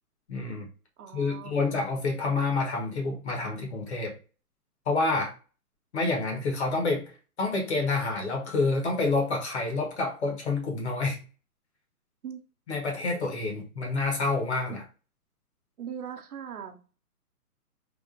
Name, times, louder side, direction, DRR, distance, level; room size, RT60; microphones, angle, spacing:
voice 1, 0.3-0.7 1.1-4.1 4.9-5.3 5.9-7.1 7.4-11.2 12.7-14.8, left 3 dB, 45° left, 1.0 m, -28 dB
voice 2, 1.0-1.7 12.2-12.4 14.7-14.8 15.8-16.9, right 8 dB, 70° right, 0.8 m, -40 dB
3.4 x 2.3 x 2.5 m
hypercardioid pair, 170°, 46 cm